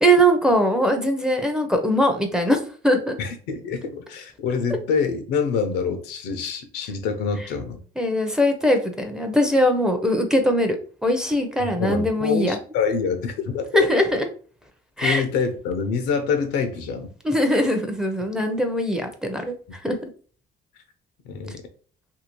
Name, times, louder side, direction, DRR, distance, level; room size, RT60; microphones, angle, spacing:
voice 1, 0.0-3.2 8.0-10.8 11.0-12.6 13.7-14.2 15.0-15.2 17.2-20.0, equal, 5° right, 4 dB, 0.5 m, -21 dB
voice 2, 3.2-7.8 11.6-13.9 15.0-17.1 21.3-21.6, left 5 dB, 90° left, 6 dB, 0.6 m, -26 dB
2.8 x 2.6 x 2.9 m, 0.42 s
cardioid pair, 110°, 17 cm